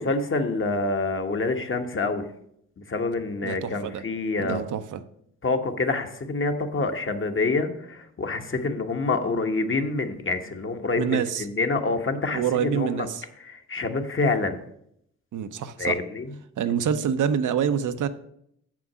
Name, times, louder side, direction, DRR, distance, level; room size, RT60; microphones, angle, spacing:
voice 1, 0.0-2.2 2.9-4.6 5.4-13.1 13.4-14.6 15.8-16.3, left 3 dB, 40° left, 6 dB, 1.2 m, -27 dB
voice 2, 3.4-4.0 4.4-5.0 11.0-11.5 12.3-13.2 15.3-16.0 16.6-18.1, right 8 dB, 70° right, 10 dB, 0.7 m, -26 dB
7.1 x 6.0 x 6.1 m, 0.71 s
cardioid pair, 70°, 32 cm